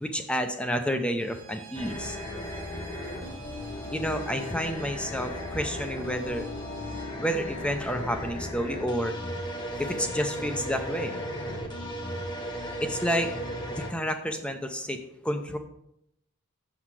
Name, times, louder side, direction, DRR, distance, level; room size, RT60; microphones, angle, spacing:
voice 1, 0.0-2.2 3.9-6.5 7.2-9.1 9.8-11.1 12.8-13.3 13.7-15.0 15.2-15.6, equal, 5° left, 6 dB, 0.5 m, -30 dB
Bowed string instrument, 1.2-7.1, right 6 dB, 60° right, 1.3 m, -50 dB
sound 1, 1.7-13.9, equal, 20° left, 1.0 m, -36 dB
sound 2, 3.9-11.1, left 4 dB, 55° left, 1.3 m, -48 dB
7.1 x 5.8 x 4.7 m, 0.76 s
head